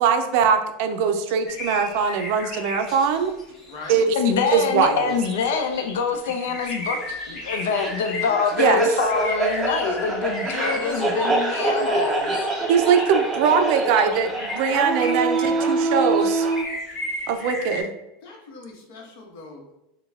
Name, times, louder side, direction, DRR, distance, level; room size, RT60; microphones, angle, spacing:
voice 1, 0.0-3.3 3.9-4.1 4.5-5.1 8.6-8.8 12.7-16.5 17.3-17.9, right 6 dB, 60° right, 0.4 m, -21 dB
sound 1, 1.5-3.9 4.6-17.8, left 2 dB, 25° left, 1.1 m, -35 dB
voice 2, 3.6-4.1 10.3-11.3 17.4-17.6 18.2-19.7, left 3 dB, 65° left, 1.1 m, -38 dB
voice 3, 4.1-7.0 7.3-12.4, left 5 dB, 90° left, 0.5 m, -25 dB
sound 2, 7.7-16.6, right 2 dB, 10° right, 0.5 m, -25 dB
4.0 x 2.2 x 3.4 m
supercardioid pair, 155°, 0 cm